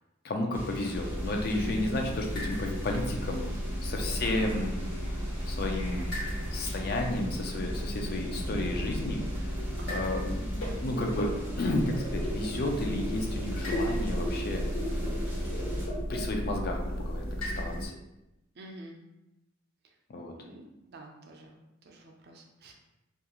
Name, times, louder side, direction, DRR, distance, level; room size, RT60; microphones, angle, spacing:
voice 1, 0.2-3.5 3.8-4.9 5.5-9.2 9.9-14.6 16.1-17.9 20.1-20.3, left 2 dB, 50° left, 2 dB, 0.4 m, -32 dB
sound 1, 0.5-15.9, equal, 10° right, 0.6 m, -42 dB
sound 2, 0.9-17.9, equal, 70° left, 1.2 m, -34 dB
voice 2, 1.5-1.9 9.8-10.0 18.6-19.0 20.4-22.7, right 1 dB, 55° right, 1 dB, 0.5 m, -46 dB
2.4 x 2.3 x 2.8 m, 0.91 s
head